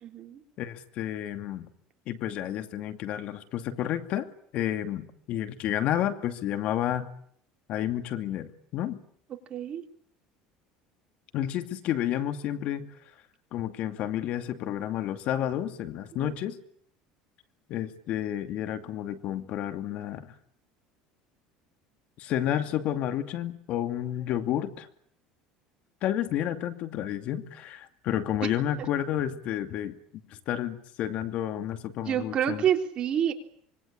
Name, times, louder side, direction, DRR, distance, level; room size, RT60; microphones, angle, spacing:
voice 1, 0.0-0.4 9.5-9.8 16.2-16.3 32.1-33.3, right 9 dB, 40° right, 5 dB, 3.7 m, -27 dB
voice 2, 0.6-1.7 2.1-7.1 7.7-9.0 11.3-12.9 13.5-16.6 17.7-20.3 22.2-24.9 26.0-30.0 30.3-32.6, left 11 dB, 55° left, 9 dB, 2.5 m, -31 dB
25.5 x 23.0 x 8.7 m, 0.65 s
supercardioid pair, 125°, 3 cm